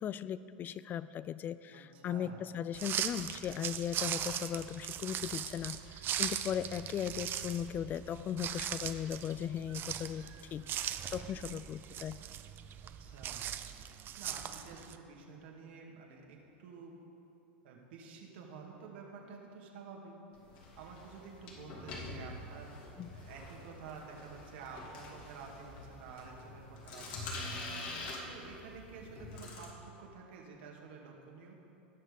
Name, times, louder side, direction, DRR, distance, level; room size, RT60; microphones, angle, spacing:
voice 1, 0.0-12.2 23.0-23.1, left 9 dB, 35° left, 16 dB, 0.3 m, -38 dB
voice 2, 1.7-2.4 12.8-13.5 14.2-17.0 17.6-20.1 20.8-27.6 28.2-31.6, right 5 dB, 75° right, -1 dB, 2.3 m, -50 dB
sound 1, 2.7-15.0, right 10 dB, 40° right, 0.6 m, -39 dB
sound 2, 20.3-29.7, left 2 dB, 65° left, 2.4 m, -46 dB
18.0 x 6.4 x 5.2 m, 2.8 s
hypercardioid pair, 105°, 6 cm